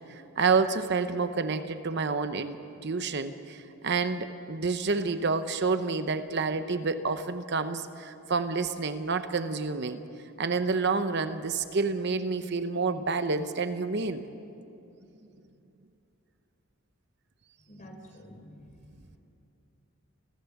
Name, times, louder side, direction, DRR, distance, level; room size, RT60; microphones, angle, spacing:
voice 1, 0.1-10.0 10.4-14.2, right 4 dB, 55° right, 10 dB, 0.8 m, -29 dB
voice 2, 17.7-19.2, equal, 40° left, 3 dB, 3.8 m, -50 dB
29.5 x 15.0 x 7.1 m, 2.7 s
head